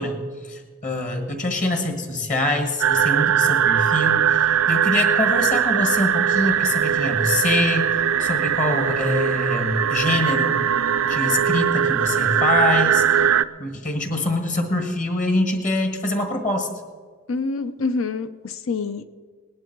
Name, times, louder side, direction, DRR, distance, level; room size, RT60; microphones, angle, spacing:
voice 1, 0.0-7.9 8.2-10.6 11.0-13.2 13.6-16.7, left 2 dB, 35° left, 5 dB, 1.6 m, -24 dB
sound 1, 2.8-13.5, right 8 dB, 75° right, 0.4 m, -20 dB
voice 2, 17.3-19.1, left 4 dB, 65° left, 12 dB, 0.7 m, -26 dB
19.0 x 10.5 x 4.6 m, 1.5 s
head